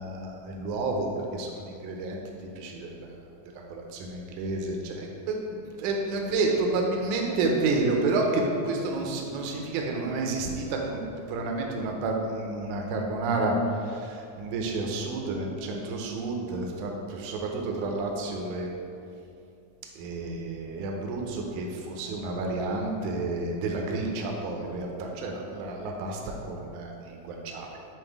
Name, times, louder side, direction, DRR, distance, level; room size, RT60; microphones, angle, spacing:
voice 1, 0.0-2.2 2.6-3.1 3.7-5.4 5.8-11.0 11.3-18.7 20.0-27.7, right 2 dB, 80° right, 0 dB, 2.0 m, -30 dB
7.2 x 3.1 x 4.6 m, 2.5 s
omnidirectional pair, 3.6 m